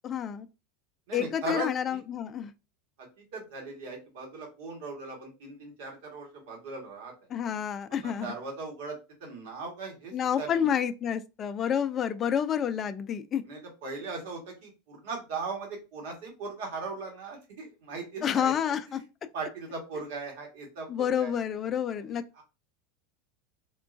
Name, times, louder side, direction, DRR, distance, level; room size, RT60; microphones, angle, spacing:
voice 1, 0.0-0.5 1.1-2.5 7.3-8.3 10.1-13.4 18.2-19.0 20.9-22.2, left 8 dB, 35° left, 0.3 m, -29 dB
voice 2, 1.1-2.0 3.0-7.1 7.9-10.7 13.4-18.5 18.9-19.0 19.3-21.3 22.0-22.4, right 3 dB, 70° right, 1.4 m, -39 dB
3.6 x 2.3 x 2.5 m
hypercardioid pair, 100°, 0 cm